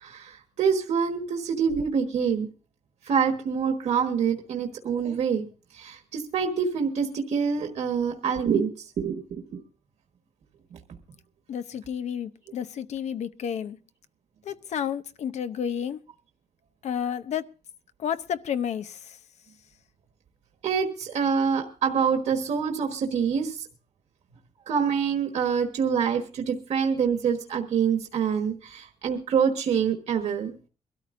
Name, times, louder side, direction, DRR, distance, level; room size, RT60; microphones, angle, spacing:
voice 1, 0.0-2.5 3.1-5.4 5.7-9.6 20.6-23.6 24.7-30.5, right 6 dB, 60° right, 3 dB, 1.4 m, -26 dB
voice 2, 11.5-13.8 14.4-16.0 16.8-17.4 18.0-19.2, left 8 dB, 60° left, 12 dB, 0.7 m, -31 dB
23.5 x 13.0 x 2.6 m, 0.35 s
wide cardioid pair, 180°, 13 cm